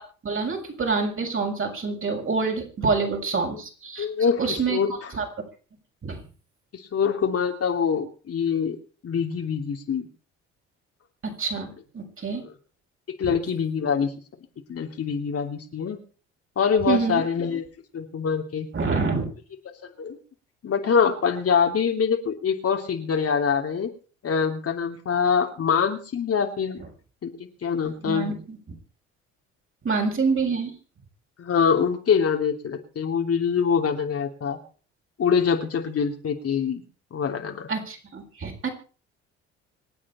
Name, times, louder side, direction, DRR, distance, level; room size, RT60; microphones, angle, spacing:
voice 1, 0.2-4.1 4.4-5.3 6.0-6.2 11.2-12.4 13.2-13.3 16.9-17.2 18.7-19.3 28.0-28.6 29.8-30.7 37.7-38.7, right 4 dB, 40° right, 2 dB, 7.0 m, -27 dB
voice 2, 4.0-4.9 6.7-8.8 9.0-10.1 13.1-14.1 14.7-16.0 16.6-17.6 17.9-18.7 20.0-20.2 20.6-23.9 24.2-26.8 27.2-28.3 31.4-34.6 35.2-36.8 37.1-37.7, left 6 dB, 50° left, 4 dB, 3.1 m, -24 dB
26.0 x 8.7 x 4.4 m, 0.40 s
hypercardioid pair, 60°, 31 cm